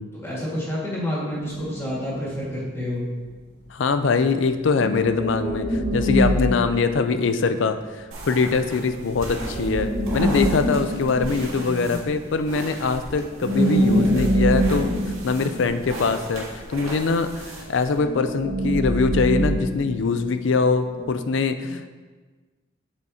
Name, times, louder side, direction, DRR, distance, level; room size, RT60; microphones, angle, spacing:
voice 1, 0.1-3.0, equal, 10° left, -6 dB, 1.7 m, -29 dB
sound 1, 1.3-2.5 4.7-7.7 9.2-12.2 12.9-13.1 13.4-16.4 17.9-20.5 20.9-21.1, equal, 55° right, 1.3 m, -25 dB
voice 2, 3.7-14.9 15.2-21.9, left 4 dB, 65° left, 9 dB, 0.4 m, -23 dB
sound 2, 8.1-18.0, right 1 dB, 85° right, 1.9 m, -37 dB
8.1 x 7.1 x 2.8 m, 1.4 s
head